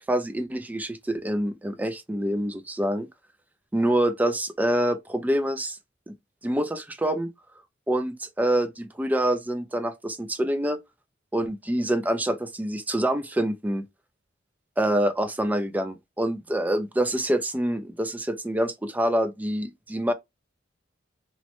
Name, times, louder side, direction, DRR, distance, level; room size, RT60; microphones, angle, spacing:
voice 1, 0.1-3.1 3.7-5.8 6.1-6.2 6.4-7.3 7.9-10.8 11.3-13.8 14.8-20.1, right 1 dB, 10° right, 0.3 m, -26 dB
3.0 x 2.1 x 2.9 m
head